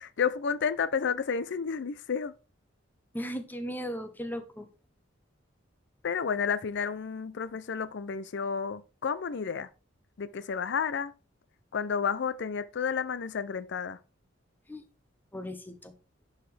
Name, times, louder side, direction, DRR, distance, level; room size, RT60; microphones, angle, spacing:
voice 1, 0.0-2.3 6.0-9.7 10.2-11.1 11.7-14.0, left 6 dB, 60° left, 0.5 m, -31 dB
voice 2, 3.1-4.7 14.7-14.8 15.3-15.9, equal, 10° left, 0.8 m, -37 dB
10.0 x 4.9 x 3.3 m
head